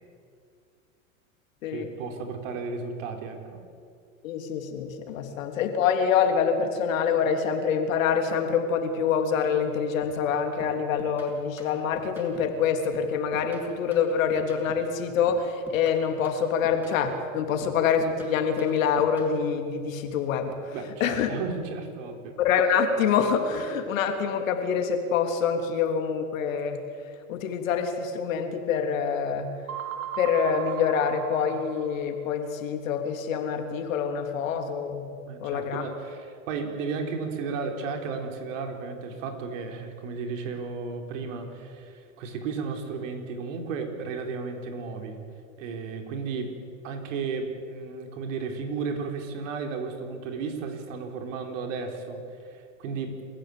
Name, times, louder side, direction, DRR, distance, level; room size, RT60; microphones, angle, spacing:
voice 1, 1.7-3.6 5.3-5.4 20.7-22.4 35.2-45.2 45.6-46.5 46.8-53.2, right 4 dB, 65° right, 4 dB, 4.5 m, -34 dB
voice 2, 4.2-20.7 21.0-21.3 22.4-26.8 27.3-29.5 30.2-35.8, left 6 dB, 70° left, 5 dB, 3.4 m, -26 dB
sound 1, 10.0-10.3 10.6-12.6 12.9-15.0 15.3-17.3 17.6-19.4, equal, 5° right, 7.4 m, -47 dB
sound 2, 29.7-32.3, right 9 dB, 80° right, 2.2 m, -36 dB
28.5 x 15.0 x 8.7 m, 2.3 s
hypercardioid pair, 105°, 41 cm